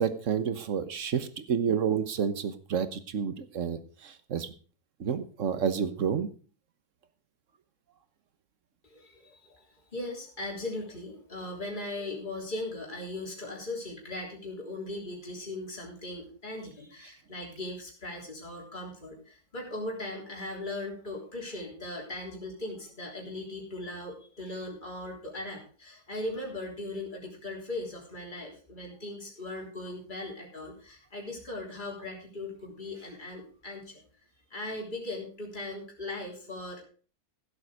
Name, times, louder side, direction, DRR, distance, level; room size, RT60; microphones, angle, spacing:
voice 1, 0.0-4.5 5.0-6.3, right 7 dB, 55° right, 12 dB, 1.4 m, -30 dB
voice 2, 8.8-9.7 9.9-34.0 34.5-36.8, left 2 dB, 30° left, -1 dB, 3.7 m, -39 dB
15.5 x 7.9 x 5.0 m, 0.40 s
omnidirectional pair, 1.6 m